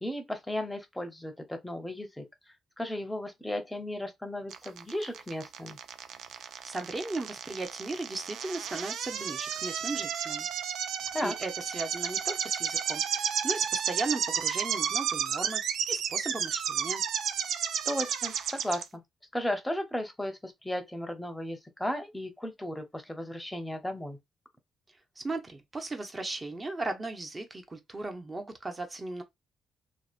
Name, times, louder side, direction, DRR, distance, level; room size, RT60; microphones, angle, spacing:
voice 1, 0.0-2.2 2.8-5.8 11.1-11.3 17.9-19.0 19.3-24.2, left 1 dB, 5° left, 0.7 m, -35 dB
sound 1, 4.5-18.8, right 8 dB, 75° right, 0.3 m, -32 dB
voice 2, 6.3-10.5 11.2-15.6 15.9-17.0 25.2-29.2, right 2 dB, 25° right, 0.7 m, -37 dB
2.8 x 2.1 x 2.4 m
cardioid pair, 90°, 0 cm